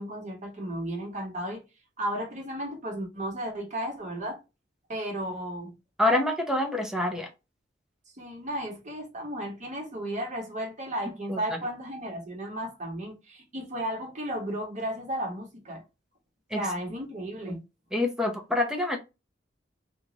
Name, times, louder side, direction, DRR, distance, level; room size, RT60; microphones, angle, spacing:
voice 1, 0.0-1.6 2.0-4.4 4.9-5.7 8.2-15.8 16.5-17.6, right 1 dB, 40° right, 1.1 m, -34 dB
voice 2, 6.0-7.3 11.3-11.6 16.5-16.6 17.5-17.6 17.9-19.0, left 1 dB, 5° right, 0.6 m, -26 dB
3.0 x 2.4 x 3.8 m
head